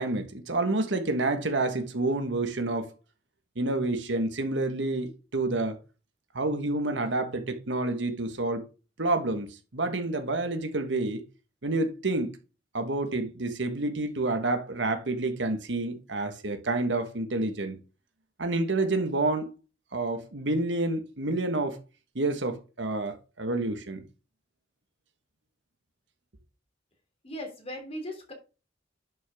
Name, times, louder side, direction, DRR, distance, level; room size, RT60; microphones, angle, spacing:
voice 1, 0.0-2.9 3.6-5.8 6.3-8.6 9.0-11.2 11.6-12.4 12.7-17.8 18.4-19.5 19.9-21.8 22.1-24.0, right 2 dB, 85° right, 1.5 m, -29 dB
voice 2, 27.2-28.3, equal, 35° left, 3.0 m, -38 dB
11.0 x 6.3 x 3.6 m
head